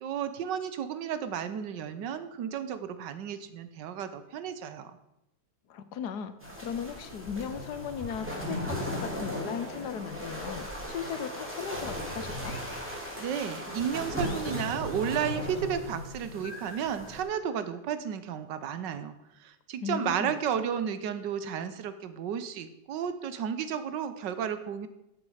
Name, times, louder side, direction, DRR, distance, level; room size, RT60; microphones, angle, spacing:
voice 1, 0.0-4.9 13.2-19.1 19.4-24.9, right 8 dB, 90° right, 11 dB, 1.5 m, -33 dB
voice 2, 5.7-12.6 19.8-20.4, left 7 dB, 70° left, 11 dB, 1.4 m, -37 dB
sound 1, 6.4-17.2, left 1 dB, 5° right, 2.3 m, -37 dB
sound 2, 12.4-13.6 14.2-15.4 16.4-17.9, left 4 dB, 40° left, 1.3 m, -51 dB
13.0 x 7.3 x 4.9 m, 0.88 s
omnidirectional pair, 1.8 m